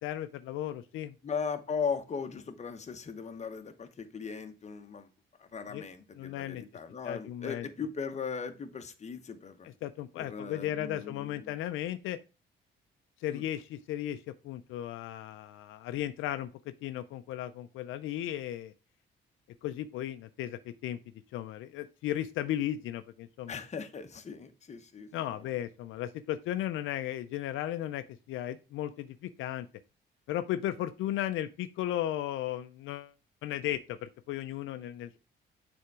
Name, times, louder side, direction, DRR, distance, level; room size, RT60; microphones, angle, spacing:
voice 1, 0.0-1.1 5.7-5.8 6.2-6.6 7.0-7.7 9.8-12.2 13.2-18.7 19.6-21.0 21.3-23.6 25.1-29.7 30.3-33.1 33.4-35.2, left 12 dB, 85° left, 11 dB, 0.5 m, -35 dB
voice 2, 1.2-5.1 5.4-9.7 10.2-11.6 13.3-13.4 23.5-25.1 25.4-25.5, left 6 dB, 35° left, 8 dB, 0.9 m, -38 dB
6.6 x 3.5 x 4.7 m, 0.31 s
cardioid pair, 90°, 20 cm